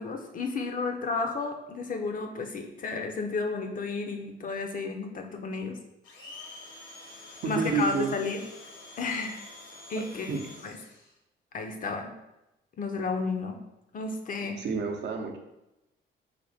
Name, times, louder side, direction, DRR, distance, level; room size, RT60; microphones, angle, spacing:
voice 1, 0.0-5.8 7.4-8.4 9.0-9.4 9.9-10.8 11.5-12.1 12.8-13.6 13.9-14.6, left 4 dB, 45° left, 4 dB, 0.5 m, -32 dB
Domestic sounds home sounds, 6.0-11.1, left 2 dB, 75° left, 1.0 m, -47 dB
voice 2, 7.4-8.1 10.3-10.4 14.6-15.4, right 4 dB, 60° right, 3 dB, 0.6 m, -29 dB
3.4 x 2.1 x 4.1 m, 0.92 s
cardioid pair, 90°, 20 cm